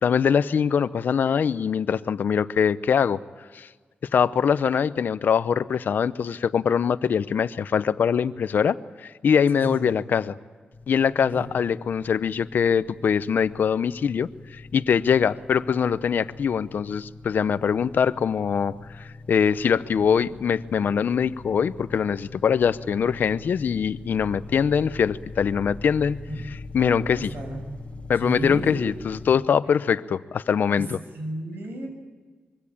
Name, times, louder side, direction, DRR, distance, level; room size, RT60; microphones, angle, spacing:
voice 1, 0.0-3.2 3.5-3.7 4.1-10.4 10.9-26.2 26.7-27.3 28.1-31.0, left 7 dB, 70° left, 14 dB, 0.8 m, -23 dB
voice 2, 9.5-9.9 11.2-11.5 26.3-26.4 26.8-27.7 28.2-28.8 31.1-31.9, right 1 dB, 75° right, 4 dB, 7.3 m, -33 dB
sound 1, 10.7-29.3, left 3 dB, 35° left, 5.1 m, -42 dB
25.0 x 23.0 x 8.7 m, 1.4 s
wide cardioid pair, 125°, 3 cm